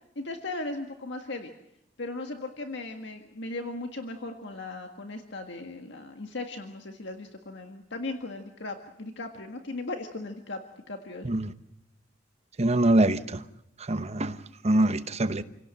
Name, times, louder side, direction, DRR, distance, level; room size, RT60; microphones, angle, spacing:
voice 1, 0.2-1.5 2.0-10.6 10.9-11.3, left 2 dB, 65° left, 5 dB, 1.8 m, -37 dB
voice 2, 12.6-13.4 13.9-14.4 14.6-15.4, right 1 dB, 35° right, 12 dB, 1.0 m, -24 dB
28.0 x 17.0 x 7.8 m, 0.84 s
head